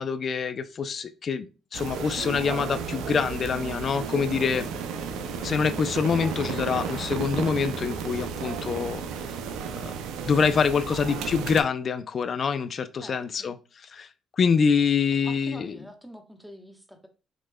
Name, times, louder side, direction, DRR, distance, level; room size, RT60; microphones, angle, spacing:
voice 1, 0.0-4.6 5.4-9.0 9.7-9.9 10.3-14.1 14.4-15.8, left 6 dB, 55° left, 0.4 m, -26 dB
sound 1, 1.7-11.6, right 6 dB, 80° right, 0.5 m, -33 dB
sound 2, 3.4-8.3, left 2 dB, 25° left, 1.0 m, -45 dB
voice 2, 4.3-4.7 10.5-11.4 13.0-13.6 15.2-17.1, equal, ahead, 1.1 m, -46 dB
5.1 x 3.1 x 2.2 m
supercardioid pair, 60°, 0 cm